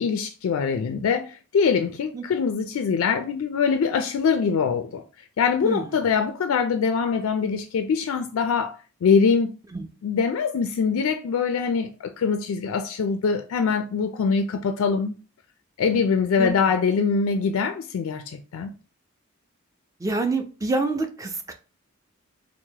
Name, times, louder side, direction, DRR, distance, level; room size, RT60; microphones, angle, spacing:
voice 1, 0.0-5.0 5.4-9.6 10.0-15.2 15.8-18.7, left 5 dB, 80° left, 0.3 m, -23 dB
voice 2, 20.0-21.5, right 3 dB, 15° right, 0.4 m, -26 dB
4.5 x 2.1 x 2.7 m
head